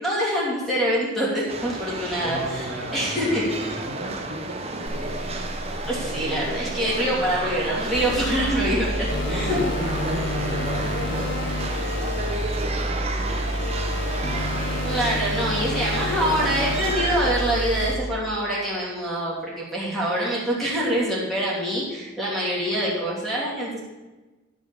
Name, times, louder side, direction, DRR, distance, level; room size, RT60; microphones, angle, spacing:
voice 1, 0.0-3.7 5.8-9.6 14.8-23.8, equal, ahead, -6 dB, 3.1 m, -25 dB
sound 1, 1.5-17.3, right 2 dB, 30° right, 1.0 m, -31 dB
voice 2, 2.2-5.6 9.2-14.9, equal, 60° right, -3 dB, 3.0 m, -36 dB
sound 2, 4.9-12.0, equal, 40° left, 2.7 m, -38 dB
sound 3, 7.9-17.9, left 1 dB, 60° left, 1.0 m, -28 dB
12.5 x 5.3 x 7.1 m, 1.2 s
head